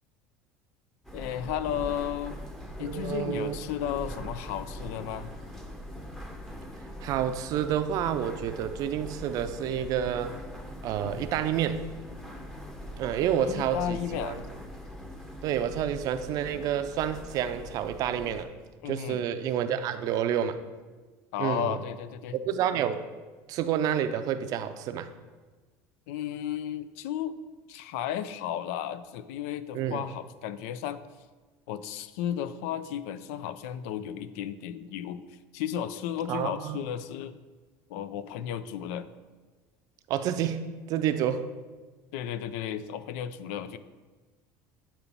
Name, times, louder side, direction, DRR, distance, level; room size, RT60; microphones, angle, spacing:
sound 1, 1.0-18.4, equal, 5° left, 0.8 m, -42 dB
voice 1, 1.1-2.4 2.8-5.4 11.0-11.2 13.4-14.4 18.8-19.2 21.3-22.4 26.1-27.3 27.7-31.0 31.7-37.4 37.9-39.1 42.1-43.8, left 10 dB, 85° left, 14 dB, 0.4 m, -34 dB
voice 2, 2.8-3.6 7.0-10.4 10.8-11.9 13.0-14.4 15.4-18.5 18.9-20.6 21.4-21.8 22.3-23.0 23.5-25.1 29.7-30.0 36.3-36.8 40.1-41.4, right 9 dB, 55° right, 10 dB, 0.5 m, -29 dB
8.2 x 3.0 x 5.3 m, 1.3 s
supercardioid pair, 115°, 7 cm